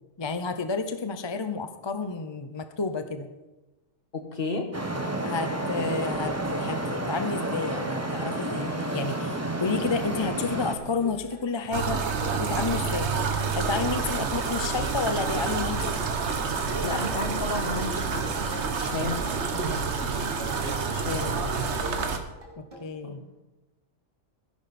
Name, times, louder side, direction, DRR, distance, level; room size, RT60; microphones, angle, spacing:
voice 1, 0.2-3.3 5.2-12.0 12.3-13.1 13.5-15.9 16.6-17.0 19.5-19.9 22.6-23.2, left 4 dB, 30° left, 8 dB, 0.5 m, -31 dB
voice 2, 4.1-4.6 16.8-18.5 18.8-19.4 20.9-21.3 23.0-23.2, left 3 dB, 45° left, 5 dB, 1.7 m, -32 dB
Traffic noise roadway noise, 4.7-10.7, right 1 dB, 15° right, 1.1 m, -30 dB
sound 1, 6.1-22.9, equal, 35° right, 3.2 m, -45 dB
sound 2, 11.7-22.2, right 5 dB, 60° right, 1.3 m, -28 dB
16.0 x 11.0 x 4.3 m, 1.1 s
omnidirectional pair, 1.3 m